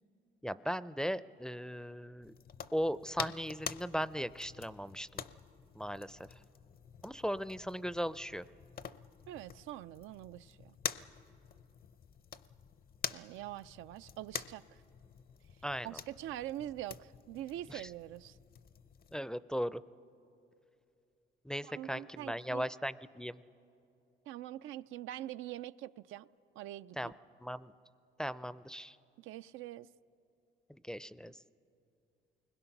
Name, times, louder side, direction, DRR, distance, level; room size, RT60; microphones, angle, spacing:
voice 1, 0.4-2.3 2.7-5.2 5.7-6.3 7.0-8.5 15.6-16.0 17.7-17.9 19.1-19.8 21.4-23.4 27.0-27.1 27.4-27.7 28.2-29.0 30.7-31.4, equal, 5° left, 0.4 m, -38 dB
sound 1, 2.2-19.2, left 8 dB, 50° left, 0.6 m, -47 dB
voice 2, 9.3-10.8 13.1-14.8 15.8-18.4 21.6-22.7 24.3-26.3 26.6-27.1 29.2-29.9, right 13 dB, 90° right, 0.4 m, -44 dB
28.5 x 21.0 x 5.9 m
cardioid pair, 90°, 20 cm